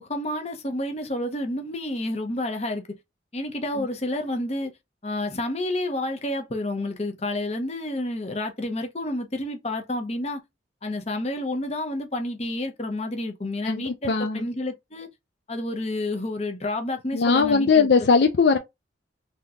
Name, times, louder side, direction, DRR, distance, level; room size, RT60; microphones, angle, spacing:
voice 1, 0.0-2.8 3.3-4.7 5.0-10.4 10.8-15.1 15.5-17.9, left 1 dB, 35° left, 0.7 m, -29 dB
voice 2, 13.6-14.5 17.1-18.6, left 5 dB, 60° left, 0.4 m, -20 dB
3.6 x 2.8 x 2.2 m
head